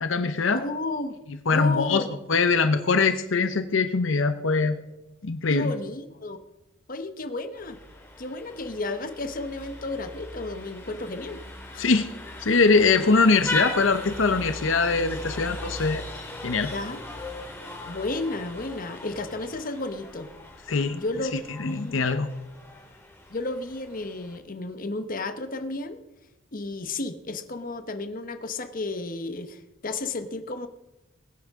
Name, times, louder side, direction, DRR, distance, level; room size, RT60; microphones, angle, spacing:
voice 1, 0.0-0.6 1.5-2.0 2.3-4.8 5.2-5.7 11.8-12.1 12.4-16.0 16.4-16.7 20.7-21.0 21.3-22.3, left 4 dB, 70° left, 10 dB, 0.7 m, -22 dB
voice 2, 0.5-1.2 1.5-2.1 5.5-6.4 6.9-7.8 8.2-11.4 11.7-11.9 16.7-17.0 17.9-20.3 20.9-22.0 23.3-26.0 26.5-30.7, left 2 dB, 45° left, 9 dB, 0.9 m, -32 dB
Vehicle horn car horn honking, 7.5-24.4, left 1 dB, 10° left, 2.1 m, -38 dB
21.0 x 9.4 x 3.6 m, 0.98 s
head